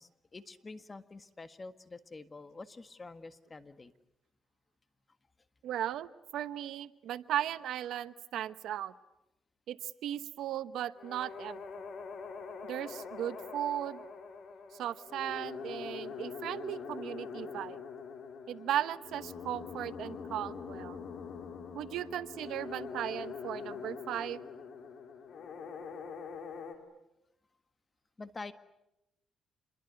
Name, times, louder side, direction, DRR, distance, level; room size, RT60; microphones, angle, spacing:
voice 1, 0.0-3.9 28.2-28.5, left 3 dB, 25° left, 11 dB, 1.7 m, -47 dB
voice 2, 5.6-8.9 9.7-11.6 12.7-14.0 14.7-17.8 18.5-21.0 21.7-24.4, right 11 dB, 80° right, 14 dB, 1.0 m, -37 dB
sound 1, 11.0-26.8, left 5 dB, 60° left, 4.5 m, -44 dB
27.5 x 22.0 x 9.5 m, 0.90 s
cardioid pair, 90°, 0 cm